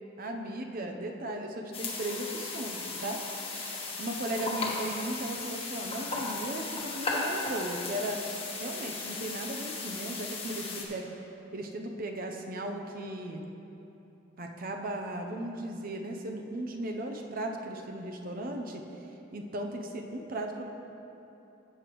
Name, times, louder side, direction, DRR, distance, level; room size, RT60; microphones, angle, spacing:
voice 1, 0.2-3.2 3.5-8.2 8.6-11.1 11.5-13.4 14.4-18.8 19.3-20.7, right 1 dB, 50° right, 3 dB, 0.7 m, -36 dB
sound 1, 1.7-10.8, left 3 dB, 30° left, 1.2 m, -36 dB
14.0 x 6.9 x 3.1 m, 3.0 s
head